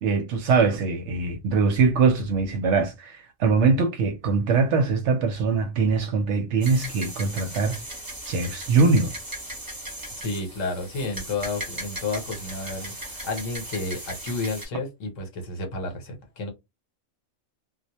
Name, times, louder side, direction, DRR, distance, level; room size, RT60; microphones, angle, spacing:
voice 1, 0.0-7.8 8.3-9.1, right 4 dB, 65° right, 0.8 m, -22 dB
sound 1, 6.6-14.7, right 1 dB, 20° right, 0.6 m, -37 dB
voice 2, 10.2-16.5, left 3 dB, 70° left, 1.1 m, -31 dB
2.3 x 2.1 x 2.7 m
omnidirectional pair, 1.4 m